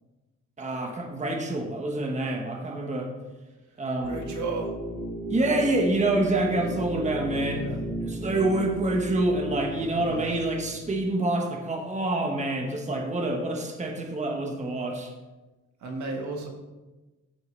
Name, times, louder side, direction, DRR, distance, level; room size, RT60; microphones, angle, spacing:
voice 1, 0.6-3.1 3.8-4.3 5.3-7.6 8.0-15.1, right 2 dB, 25° right, 2 dB, 1.2 m, -27 dB
sound 1, 4.0-10.8, right 1 dB, 80° left, 2.6 m, -35 dB
voice 2, 4.0-4.7 7.5-7.8 10.0-10.4 15.8-16.5, right 4 dB, 70° right, 1 dB, 1.7 m, -34 dB
13.5 x 4.5 x 3.3 m, 1.1 s
cardioid pair, 90°, 30 cm